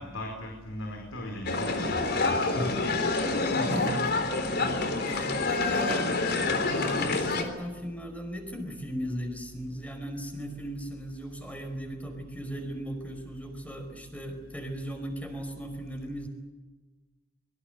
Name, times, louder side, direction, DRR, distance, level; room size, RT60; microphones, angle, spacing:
voice 1, 0.0-2.7, equal, 75° left, 2 dB, 4.9 m, -37 dB
sound 1, 1.5-7.4, left 3 dB, 55° left, 3.8 m, -27 dB
voice 2, 3.5-4.0 5.0-6.2 6.6-16.3, equal, 5° left, 5 dB, 5.2 m, -37 dB
24.5 x 23.5 x 8.2 m, 1.2 s
head